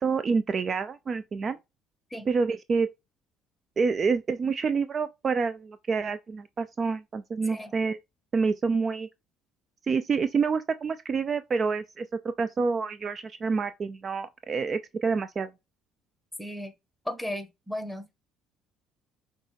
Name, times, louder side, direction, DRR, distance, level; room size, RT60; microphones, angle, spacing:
voice 1, 0.0-1.6 2.3-2.9 3.8-8.0 8.3-9.1 9.9-12.1 12.4-15.5, right 5 dB, 40° right, 0.3 m, -27 dB
voice 2, 16.4-16.7 17.0-18.1, left 1 dB, ahead, 1.2 m, -35 dB
5.1 x 3.1 x 3.3 m
hypercardioid pair, 55°, 0 cm